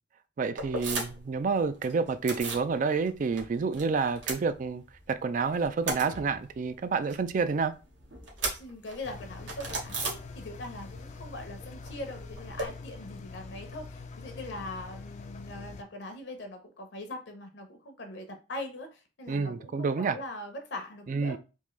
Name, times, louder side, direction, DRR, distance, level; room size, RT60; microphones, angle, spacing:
voice 1, 0.4-7.7 19.3-20.2 21.1-21.4, right 4 dB, 40° right, 0.3 m, -29 dB
sound 1, 0.6-1.3 1.6-2.7 3.0-3.8 4.1-5.1 5.4-10.8 11.0-12.7, right 3 dB, 75° right, 1.1 m, -37 dB
voice 2, 8.6-21.4, left 1 dB, 60° left, 0.7 m, -41 dB
Engine, 9.0-15.8, left 4 dB, 40° left, 0.4 m, -44 dB
3.6 x 2.5 x 3.1 m
head